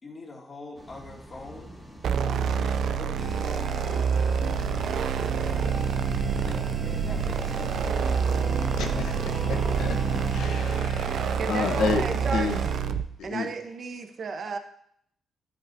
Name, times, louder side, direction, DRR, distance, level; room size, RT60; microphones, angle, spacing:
voice 1, 0.0-1.8 2.4-4.1 6.4-8.2, left 2 dB, 35° left, 2.4 m, -43 dB
sound 1, 0.7-11.2, equal, 5° right, 2.3 m, -46 dB
sound 2, 2.0-13.1, right 7 dB, 70° right, 0.5 m, -27 dB
sound 3, 3.2-12.8, right 2 dB, 30° right, 2.0 m, -36 dB
voice 2, 8.8-9.9 10.3-12.0 12.3-12.6 13.2-13.5, left 5 dB, 80° left, 1.0 m, -30 dB
voice 3, 11.4-12.5 13.2-14.6, right 5 dB, 55° right, 1.0 m, -33 dB
11.5 x 7.6 x 2.7 m
cardioid pair, 70°, 0 cm